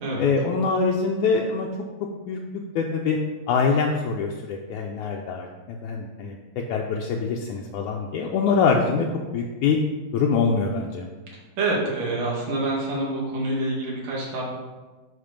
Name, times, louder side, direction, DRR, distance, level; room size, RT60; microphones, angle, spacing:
voice 1, 0.2-1.7 2.3-2.4 2.8-3.2 3.5-6.4 6.7-9.1 9.3-9.8 10.1-11.1, left 5 dB, 75° left, 0 dB, 1.9 m, -24 dB
voice 2, 11.6-14.4, right 2 dB, 55° right, -4 dB, 3.0 m, -26 dB
10.0 x 4.4 x 5.2 m, 1.2 s
omnidirectional pair, 3.8 m